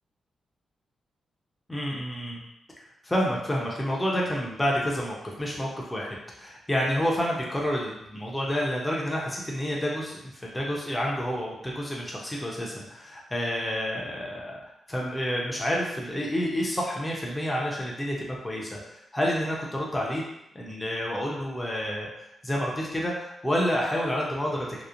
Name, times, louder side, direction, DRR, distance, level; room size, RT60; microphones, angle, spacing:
voice 1, 1.7-2.4 3.0-14.6 14.9-20.2 20.5-22.1 22.4-24.8, equal, 10° left, -3 dB, 0.6 m, -29 dB
2.9 x 2.1 x 2.5 m, 0.82 s
cardioid pair, 95°, 0 cm